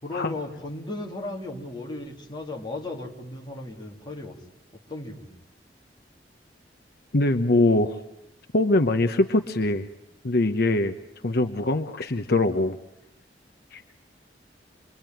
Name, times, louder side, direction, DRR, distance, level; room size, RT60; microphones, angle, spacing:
voice 1, 0.0-4.4 4.7-5.3, left 2 dB, 25° left, 1 dB, 2.9 m, -36 dB
voice 2, 7.1-8.0 8.5-9.9 10.2-10.9 11.2-12.8 13.7-13.8, left 2 dB, 60° left, 8 dB, 0.9 m, -22 dB
26.0 x 23.0 x 9.1 m, 0.84 s
head